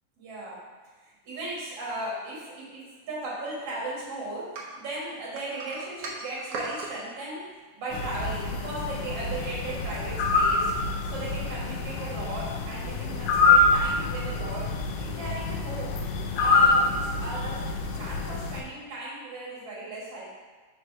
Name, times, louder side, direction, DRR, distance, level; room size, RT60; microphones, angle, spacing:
voice 1, 0.2-0.6 1.0-7.4 7.7-10.7 11.0-16.0 16.3-20.3, right 2 dB, 50° right, -6 dB, 2.4 m, -36 dB
sound 1, 4.5-6.9, right 3 dB, 85° right, 1.2 m, -37 dB
sound 2, 7.9-18.6, left 3 dB, 85° left, 2.2 m, -26 dB
5.2 x 3.3 x 5.5 m, 1.4 s
omnidirectional pair, 3.7 m